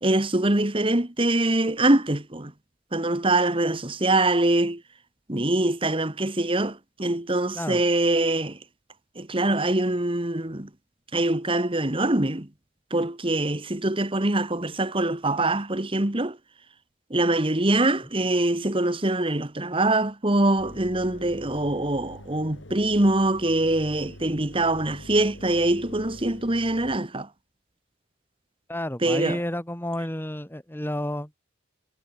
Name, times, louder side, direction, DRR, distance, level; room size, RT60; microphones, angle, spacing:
voice 1, 0.0-2.5 2.9-4.8 5.3-8.6 9.1-10.7 11.1-12.5 12.9-16.4 17.1-27.3 29.0-29.4, right 2 dB, 25° right, 1.7 m, -24 dB
Engine, 20.6-27.0, left 1 dB, 65° left, 4.1 m, -45 dB
voice 2, 28.7-31.4, left 1 dB, 10° left, 1.6 m, -31 dB
head